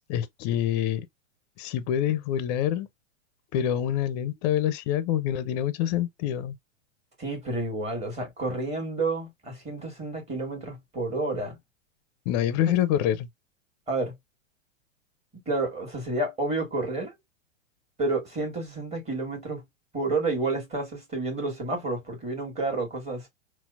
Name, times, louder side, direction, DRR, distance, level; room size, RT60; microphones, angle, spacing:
voice 1, 0.1-1.1 1.6-2.9 3.5-6.6 12.3-13.3, left 10 dB, 35° left, 0.4 m, -26 dB
voice 2, 7.2-11.6 13.9-14.1 15.5-17.1 18.0-19.6 19.9-23.3, right 2 dB, 15° right, 1.5 m, -30 dB
4.2 x 2.1 x 2.4 m
hypercardioid pair, 110°, 38 cm